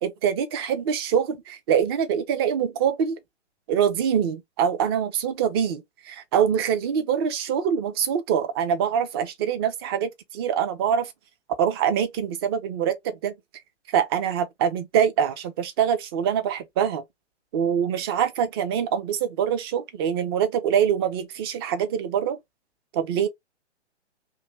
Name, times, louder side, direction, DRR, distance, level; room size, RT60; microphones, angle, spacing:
voice 1, 0.0-3.2 3.7-11.1 11.6-13.3 13.9-17.0 17.5-22.4 22.9-23.3, right 8 dB, 20° right, 0.6 m, -24 dB
2.8 x 2.7 x 3.1 m
figure-of-eight pair, 125°, 35 cm